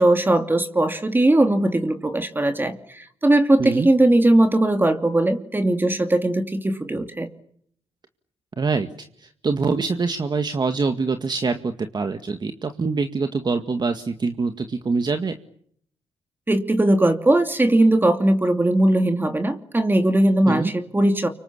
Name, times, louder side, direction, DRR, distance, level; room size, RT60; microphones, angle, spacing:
voice 1, 0.0-7.3 16.5-21.3, right 1 dB, 20° right, 7 dB, 2.7 m, -19 dB
voice 2, 8.6-8.9 9.2-15.3 20.5-20.7, right 4 dB, 40° right, 7 dB, 2.0 m, -24 dB
29.0 x 25.5 x 7.2 m, 0.67 s
cardioid pair, 65°, 11 cm